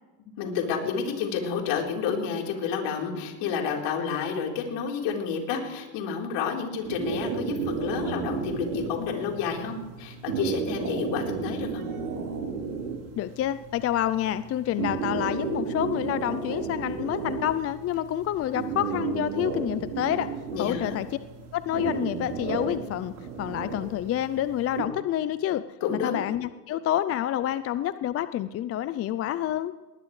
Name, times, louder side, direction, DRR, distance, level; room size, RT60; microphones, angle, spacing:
voice 1, 0.4-11.8 20.5-21.0 25.8-26.2, left 6 dB, 55° left, 1 dB, 4.3 m, -30 dB
sound 1, 6.8-24.8, right 5 dB, 70° right, 4.3 m, -33 dB
voice 2, 13.2-20.3 20.6-21.1 21.5-25.6 25.9-29.7, left 12 dB, 30° left, 14 dB, 0.5 m, -28 dB
20.0 x 19.5 x 3.3 m, 1.2 s
hypercardioid pair, 90°, 50 cm